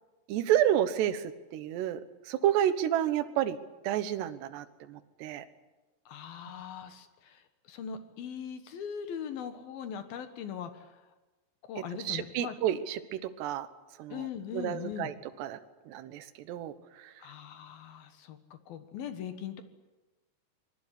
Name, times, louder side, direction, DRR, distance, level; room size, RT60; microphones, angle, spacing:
voice 1, 0.3-3.6 3.8-5.5 12.0-13.7 14.0-14.3 14.5-15.6 15.9-17.2, right 11 dB, 70° right, 10 dB, 2.9 m, -30 dB
voice 2, 6.1-11.0 11.6-12.6 14.1-15.1 17.2-19.6, left 8 dB, 65° left, 9 dB, 2.6 m, -40 dB
25.5 x 21.5 x 8.3 m, 1.1 s
omnidirectional pair, 5.8 m